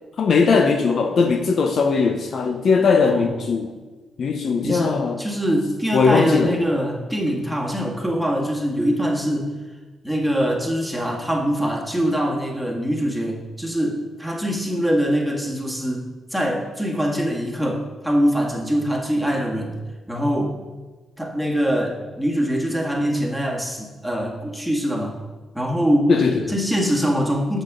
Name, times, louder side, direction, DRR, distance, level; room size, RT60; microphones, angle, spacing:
voice 1, 0.2-3.7 4.2-5.2 5.9-6.5 26.1-26.5, left 5 dB, 60° left, 5 dB, 0.7 m, -19 dB
voice 2, 4.6-9.5 10.0-19.8 20.1-20.6 21.2-25.2 25.5-26.1 26.5-27.6, equal, ahead, -1 dB, 1.9 m, -23 dB
6.6 x 6.6 x 6.2 m, 1.3 s
cardioid pair, 95°, 0 cm